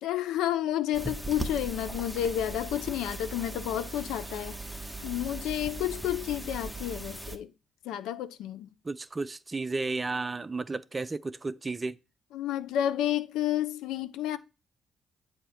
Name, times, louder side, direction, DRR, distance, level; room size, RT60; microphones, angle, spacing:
voice 1, 0.0-4.6 5.0-7.5 7.8-8.7 12.3-14.4, left 11 dB, 85° left, 0.4 m, -30 dB
sound 1, 0.9-7.4, right 2 dB, 5° right, 0.9 m, -38 dB
voice 2, 8.8-12.0, right 3 dB, 30° right, 0.5 m, -33 dB
7.7 x 2.8 x 5.6 m
supercardioid pair, 60°, 0 cm